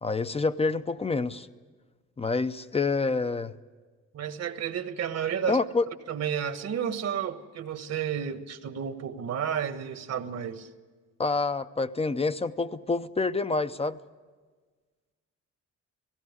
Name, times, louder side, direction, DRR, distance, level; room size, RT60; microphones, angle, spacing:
voice 1, 0.0-1.5 2.2-3.5 5.5-5.9 11.2-14.0, left 3 dB, 20° left, 0.6 m, -27 dB
voice 2, 4.1-5.6 6.1-10.7, right 8 dB, 60° right, 1.2 m, -31 dB
18.5 x 16.0 x 9.5 m
cardioid pair, 90°, 30 cm